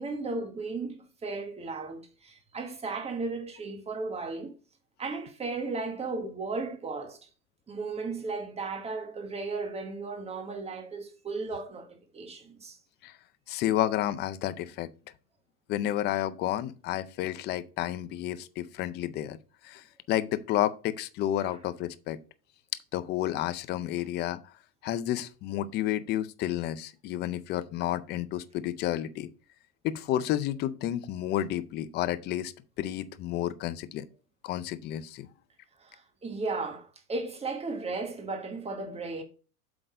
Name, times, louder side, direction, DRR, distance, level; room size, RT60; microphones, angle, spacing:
voice 1, 0.0-4.5 5.0-7.3 7.7-11.9 12.1-12.8 21.4-21.6 35.8-39.2, right 3 dB, 15° right, 1.5 m, -35 dB
voice 2, 13.5-14.9 15.7-19.4 19.6-22.2 22.9-24.5 24.8-29.3 29.8-32.5 32.8-34.1 34.4-35.3, left 12 dB, 25° left, 0.4 m, -31 dB
7.9 x 3.9 x 5.0 m
hypercardioid pair, 125°, 44 cm